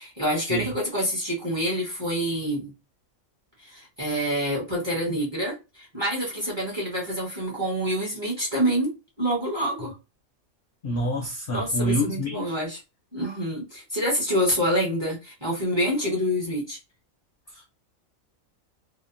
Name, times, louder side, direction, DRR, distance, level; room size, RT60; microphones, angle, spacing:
voice 1, 0.0-2.7 3.6-8.9 9.2-9.9 11.5-12.8 13.1-16.8, equal, 25° right, 0.8 m, -27 dB
voice 2, 10.8-12.5, equal, 60° left, 0.6 m, -27 dB
2.8 x 2.1 x 2.4 m
omnidirectional pair, 1.4 m